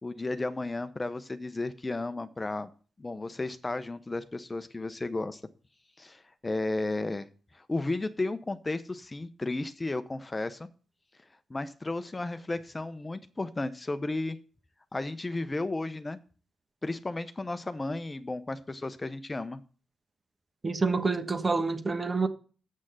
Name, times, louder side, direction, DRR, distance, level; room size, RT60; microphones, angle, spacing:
voice 1, 0.0-2.7 3.0-5.4 6.0-7.3 7.5-10.7 11.5-14.4 14.9-16.2 16.8-19.6, left 2 dB, 25° left, 0.7 m, -33 dB
voice 2, 20.6-22.3, right 4 dB, 35° right, 1.1 m, -27 dB
7.5 x 6.3 x 7.6 m
supercardioid pair, 55°, 0 cm